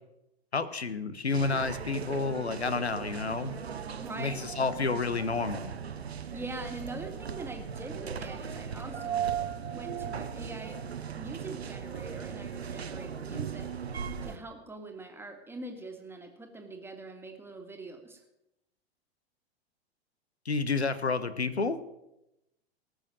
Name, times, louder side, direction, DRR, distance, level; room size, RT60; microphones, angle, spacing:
voice 1, 0.5-3.5 4.2-5.7 20.4-21.8, left 4 dB, 85° left, 14 dB, 1.0 m, -30 dB
sound 1, 1.3-14.4, right 7 dB, 80° right, 0.9 m, -37 dB
voice 2, 3.8-4.4 6.3-9.2 9.7-10.8 11.2-13.7 14.2-18.2, right 2 dB, 5° right, 3 dB, 1.9 m, -43 dB
19.0 x 6.4 x 6.3 m, 0.89 s
figure-of-eight pair, 95°, 32 cm